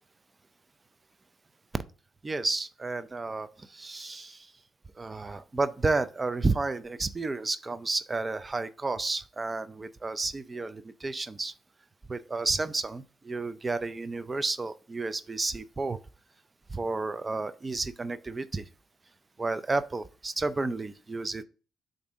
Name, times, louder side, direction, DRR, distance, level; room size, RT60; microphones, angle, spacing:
voice 1, 2.2-4.5 5.0-11.5 12.1-16.0 16.7-18.6 19.4-21.4, right 3 dB, 25° right, 0.5 m, -31 dB
6.9 x 2.7 x 5.0 m
cardioid pair, 90°, 0 cm